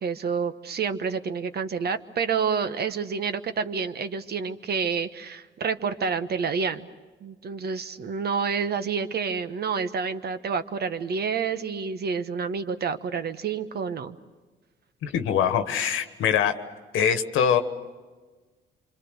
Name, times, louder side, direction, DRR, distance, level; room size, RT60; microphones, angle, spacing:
voice 1, 0.0-6.9 7.2-14.2, right 6 dB, 55° right, 11 dB, 1.2 m, -28 dB
voice 2, 15.0-16.6 16.9-17.6, left 8 dB, 85° left, 8 dB, 1.4 m, -23 dB
27.5 x 25.5 x 6.5 m, 1.3 s
cardioid pair, 90°, 20 cm